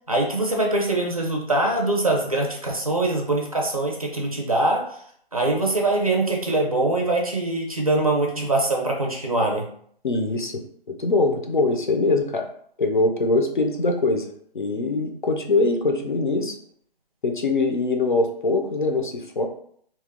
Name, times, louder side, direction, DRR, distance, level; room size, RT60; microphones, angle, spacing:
voice 1, 0.1-5.0 5.3-9.7, right 2 dB, 35° right, 0 dB, 0.5 m, -23 dB
voice 2, 10.0-10.6 10.9-12.5 12.8-14.3 14.5-16.5 17.2-19.5, left 3 dB, 50° left, 4 dB, 0.5 m, -22 dB
2.9 x 2.2 x 3.4 m, 0.63 s
hypercardioid pair, 175°, 31 cm